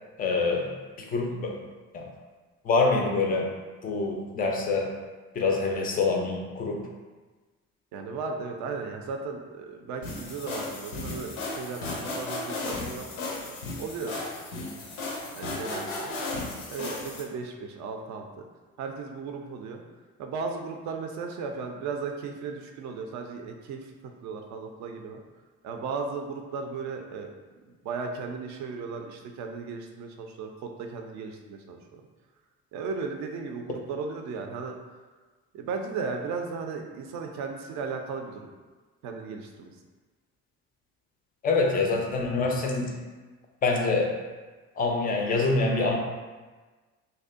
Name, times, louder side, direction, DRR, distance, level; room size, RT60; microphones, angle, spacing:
voice 1, 0.2-1.6 1.9-2.1 2.6-3.5 3.8-5.0 5.3-6.9 41.4-42.9 43.6-44.2 44.8-46.0, left 3 dB, 25° left, 1 dB, 0.3 m, -26 dB
voice 2, 7.9-13.1 13.4-14.2 15.4-16.1 16.7-18.5 18.8-19.8 20.2-25.2 25.6-27.3 27.8-32.0 32.7-34.7 35.5-38.5 39.0-39.7, right 4 dB, 45° right, 3 dB, 0.4 m, -36 dB
sound 1, 10.0-17.2, left 2 dB, 80° left, 0.5 m, -35 dB
2.6 x 2.1 x 2.4 m, 1.3 s
figure-of-eight pair, 45°, 42 cm